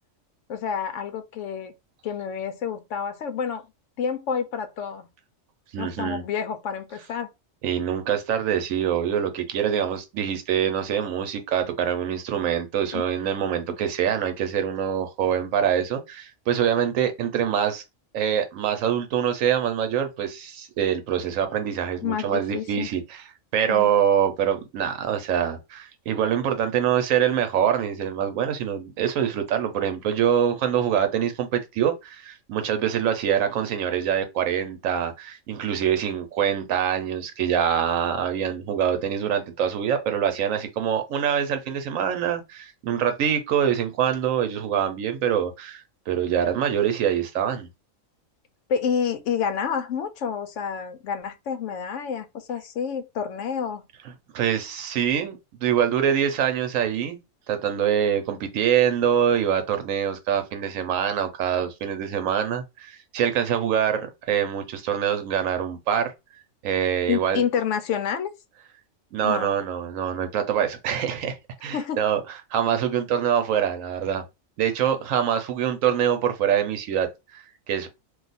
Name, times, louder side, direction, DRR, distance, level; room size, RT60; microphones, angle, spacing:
voice 1, 0.5-1.7 2.0-3.6 4.0-5.1 5.8-7.3 12.9-13.0 22.0-22.9 23.7-23.9 48.7-53.8 67.1-68.3 69.2-69.5 71.7-72.0, left 7 dB, 70° left, 0.9 m, -28 dB
voice 2, 5.7-6.2 7.6-17.8 18.1-23.2 23.5-47.7 54.3-57.2 57.5-66.1 66.6-67.4 69.1-74.2 74.6-77.9, right 9 dB, 85° right, 1.0 m, -25 dB
2.5 x 2.3 x 3.9 m
omnidirectional pair, 1.4 m